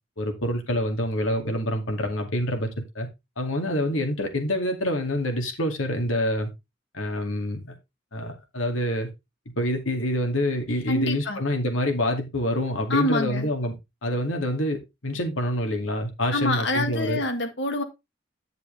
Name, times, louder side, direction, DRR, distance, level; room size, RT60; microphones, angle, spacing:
voice 1, 0.2-2.7 2.9-3.1 3.4-6.5 6.9-7.7 8.1-9.1 9.6-13.8 14.0-17.2, left 1 dB, 85° left, 2.3 m, -26 dB
voice 2, 10.9-11.4 12.9-13.5 16.3-17.8, left 1 dB, 60° left, 1.7 m, -26 dB
10.5 x 6.7 x 3.3 m
head